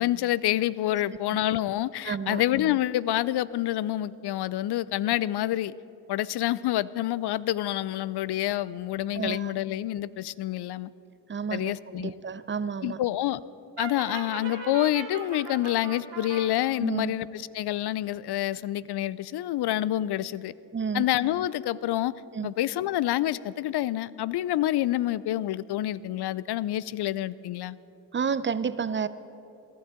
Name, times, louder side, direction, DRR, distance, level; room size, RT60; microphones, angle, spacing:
voice 1, 0.0-5.7 6.1-10.9 11.5-12.1 12.8-13.4 13.8-20.5 20.9-22.1 22.4-27.8, left 14 dB, 55° left, 19 dB, 0.6 m, -27 dB
voice 2, 2.0-2.4 9.1-9.5 11.3-13.0 16.8-17.1 20.7-21.0 22.3-22.5 28.1-29.1, right 6 dB, 25° right, 15 dB, 0.6 m, -30 dB
Brass instrument, 13.8-16.5, right 6 dB, 70° right, 2.3 m, -38 dB
22.0 x 14.0 x 3.8 m, 2.9 s
hypercardioid pair, 50°, 48 cm